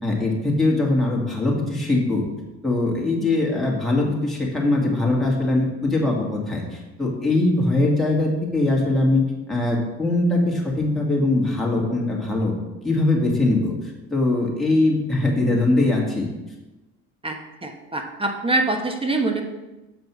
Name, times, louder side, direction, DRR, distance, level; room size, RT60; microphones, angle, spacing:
voice 1, 0.0-2.3 2.6-9.2 9.5-12.5 12.8-16.3, left 2 dB, ahead, -4 dB, 2.1 m, -21 dB
voice 2, 17.2-19.4, right 2 dB, 20° right, 4 dB, 1.1 m, -24 dB
7.0 x 5.2 x 6.1 m, 1.1 s
cardioid pair, 95°, 29 cm